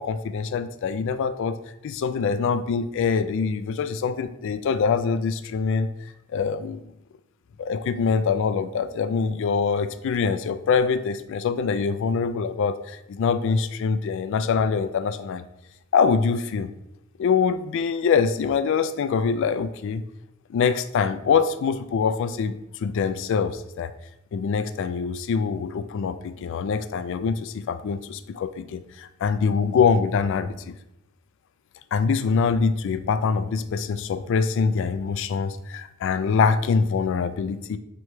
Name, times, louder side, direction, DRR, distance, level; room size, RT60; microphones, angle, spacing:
voice 1, 0.0-1.6 1.8-5.9 6.3-6.8 7.6-15.4 15.9-16.7 17.2-20.0 20.5-23.9 24.3-30.7 31.9-37.8, left 5 dB, 65° left, 12 dB, 0.3 m, -24 dB
3.3 x 3.0 x 4.6 m, 0.84 s
head